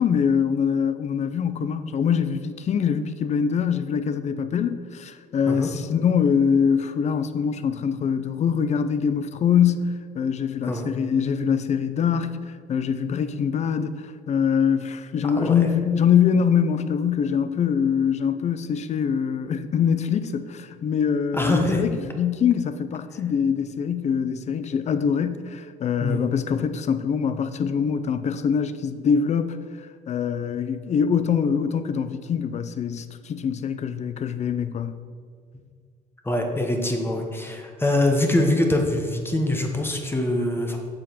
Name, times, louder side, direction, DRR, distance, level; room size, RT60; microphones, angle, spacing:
voice 1, 0.0-29.6 30.1-35.0, left 7 dB, 40° left, 0.5 m, -24 dB
voice 2, 21.3-21.8 26.0-26.3 36.2-40.8, left 1 dB, 15° left, 1.1 m, -24 dB
7.2 x 5.3 x 5.8 m
cardioid pair, 110°, 17 cm